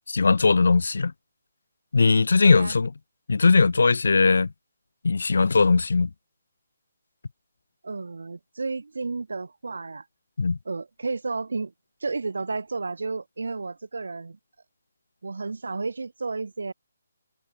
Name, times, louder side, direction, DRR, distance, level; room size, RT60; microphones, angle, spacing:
voice 1, 0.1-1.1 1.9-2.9 3.3-4.5 5.0-6.1 10.4-10.6, left 4 dB, 75° left, 0.5 m, -19 dB
voice 2, 2.4-2.8 7.8-10.0 10.6-11.7 12.0-14.4 15.2-16.7, right 3 dB, 85° right, 6.8 m, -32 dB
hypercardioid pair, 165°, 0 cm